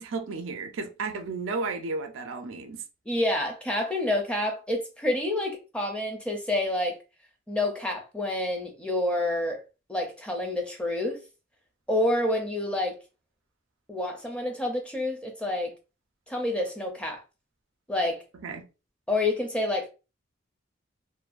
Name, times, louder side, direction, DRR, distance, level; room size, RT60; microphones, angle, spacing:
voice 1, 0.0-2.8 18.4-18.6, right 4 dB, 85° right, 0.4 m, -33 dB
voice 2, 3.1-7.0 7.5-9.6 9.9-11.2 11.9-12.9 13.9-15.7 16.3-17.2 17.9-18.2 19.1-19.9, left 1 dB, 5° left, 0.5 m, -28 dB
2.5 x 2.3 x 2.4 m
head